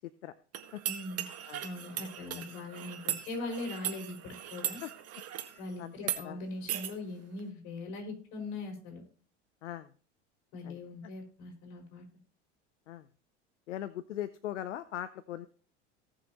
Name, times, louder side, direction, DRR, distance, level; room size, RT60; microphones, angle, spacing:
voice 1, 0.0-0.3 0.7-0.8 1.5-1.6 2.3-2.4 4.8-4.9 5.5-5.9 6.2-6.4 9.6-9.9 10.6-10.8 12.9-13.1 13.7-15.5, left 12 dB, 85° left, 14 dB, 0.7 m, -40 dB
sound 1, 0.5-5.6 6.0-6.2 6.7-6.9, right 11 dB, 45° right, 1.7 m, -38 dB
voice 2, 0.8-1.3 1.6-4.8 5.6-9.0 10.5-12.0, left 2 dB, 60° left, 2 dB, 5.7 m, -41 dB
18.5 x 6.6 x 3.0 m, 0.41 s
hypercardioid pair, 85°, 35 cm